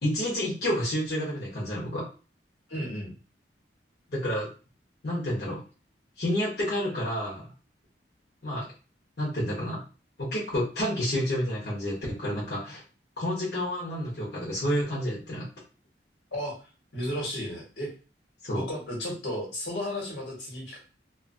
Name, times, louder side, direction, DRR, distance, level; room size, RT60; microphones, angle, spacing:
voice 1, 0.0-2.1 4.1-4.5 5.0-5.6 6.2-7.4 8.4-8.6 9.2-9.8 10.2-12.8 13.2-15.5 18.4-18.6, equal, 60° left, -7 dB, 0.9 m, -29 dB
voice 2, 2.7-3.1 16.3-16.6 16.9-17.9 18.5-20.8, left 1 dB, 85° left, -3 dB, 1.3 m, -33 dB
2.5 x 2.4 x 2.5 m, 0.34 s
head